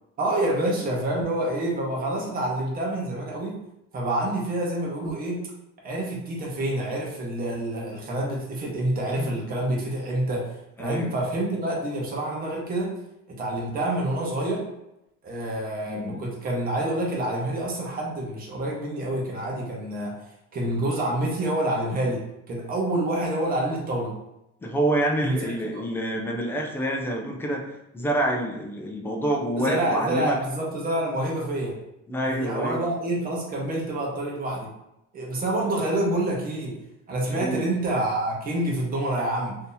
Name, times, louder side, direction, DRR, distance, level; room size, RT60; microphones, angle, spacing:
voice 1, 0.2-3.6 3.9-5.4 5.8-13.0 13.3-14.6 15.2-20.2 20.5-24.2 25.2-25.9 29.6-31.8 32.3-34.7 35.1-36.8 37.1-39.6, right 1 dB, 30° right, -2 dB, 0.8 m, -27 dB
voice 2, 10.8-11.1 15.9-16.2 24.6-27.7 27.9-30.4 32.1-32.8 37.3-37.7, right 1 dB, 10° left, 1 dB, 0.3 m, -27 dB
2.7 x 2.7 x 3.8 m, 0.86 s
cardioid pair, 160°, 30 cm